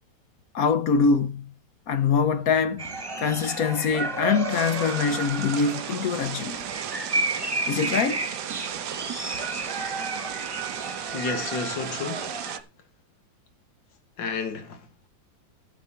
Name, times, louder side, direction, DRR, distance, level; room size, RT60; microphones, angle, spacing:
voice 1, 0.5-1.5 1.9-2.9 3.2-6.6 7.7-8.2, left 5 dB, 60° left, 1.1 m, -24 dB
sound 1, 2.8-12.6, right 2 dB, 15° right, 1.3 m, -32 dB
sound 2, 4.5-12.6, right 10 dB, 70° right, 1.2 m, -35 dB
voice 2, 11.1-12.3 14.2-15.1, left 4 dB, 85° left, 2.3 m, -31 dB
12.0 x 7.9 x 4.4 m
omnidirectional pair, 1.9 m